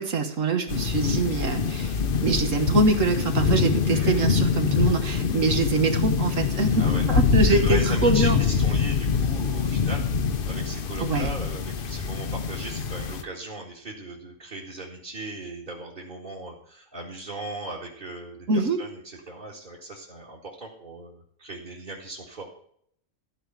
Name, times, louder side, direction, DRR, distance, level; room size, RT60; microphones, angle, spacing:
voice 1, 0.0-1.9 2.2-8.4 11.0-11.3 18.5-18.8, right 3 dB, 70° right, 5 dB, 1.6 m, -24 dB
sound 1, 0.7-13.2, left 6 dB, 45° left, 0.9 m, -24 dB
voice 2, 3.9-4.3 6.8-7.0 7.4-10.1 10.5-22.5, right 2 dB, 35° right, -3 dB, 2.2 m, -38 dB
14.5 x 5.0 x 9.1 m, 0.65 s
omnidirectional pair, 1.4 m